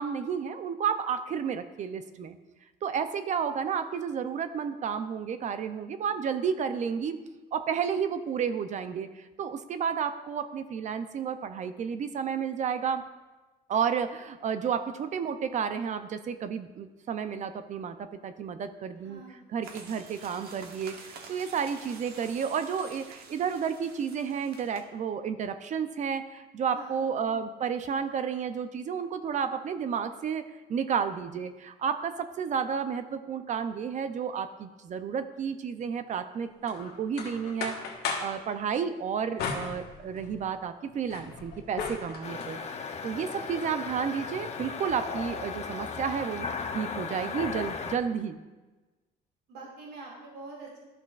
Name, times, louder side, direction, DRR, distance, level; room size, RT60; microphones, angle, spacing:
voice 1, 0.0-2.4 2.8-7.2 7.5-13.0 13.7-19.2 19.5-30.4 30.7-42.6 43.0-46.5 46.7-48.4, right 7 dB, 45° right, 10 dB, 0.5 m, -31 dB
voice 2, 19.0-19.4 26.7-27.0 42.3-42.5 49.5-50.8, right 3 dB, 85° right, -3 dB, 2.3 m, -45 dB
sound 1, 19.6-24.8, right 5 dB, 70° right, 1.0 m, -48 dB
sound 2, 36.7-38.4 39.4-40.4 40.9-42.6, left 5 dB, 70° left, 1.3 m, -36 dB
sound 3, 42.2-48.0, left 5 dB, 40° left, 0.7 m, -36 dB
11.5 x 6.1 x 2.4 m, 1.2 s
cardioid pair, 110°, 17 cm